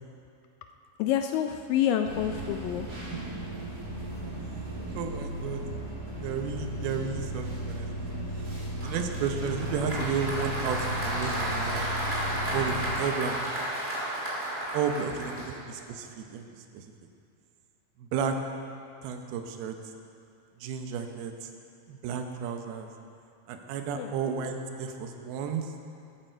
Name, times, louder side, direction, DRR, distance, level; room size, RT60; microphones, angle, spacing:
voice 1, 1.0-2.9 15.4-15.5 24.0-24.2, left 10 dB, 80° left, 6 dB, 2.0 m, -28 dB
sound 1, 2.0-12.9, equal, 35° right, 4.2 m, -35 dB
voice 2, 4.9-5.6 6.2-8.1 8.8-11.9 12.5-13.4 14.7-16.8 18.0-18.4 19.0-19.7 20.6-21.5 21.9-22.9 23.5-25.7, right 6 dB, 85° right, 5 dB, 2.9 m, -33 dB
Applause, 8.8-15.9, right 1 dB, 20° right, 2.2 m, -33 dB
13.5 x 13.0 x 4.6 m, 2.5 s
omnidirectional pair, 4.3 m